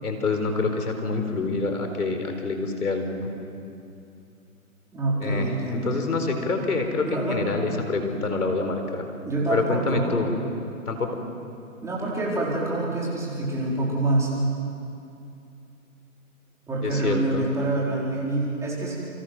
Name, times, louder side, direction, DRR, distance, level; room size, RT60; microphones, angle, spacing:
voice 1, 0.0-3.3 5.2-9.1 9.5-10.3 10.9-11.2 16.8-17.4, left 3 dB, 85° left, 5 dB, 4.4 m, -26 dB
voice 2, 4.9-6.0 7.0-7.4 9.2-10.2 11.8-14.3 16.7-18.9, right 2 dB, 5° right, -5 dB, 4.3 m, -26 dB
28.5 x 26.0 x 6.1 m, 2.6 s
hypercardioid pair, 150°, 44 cm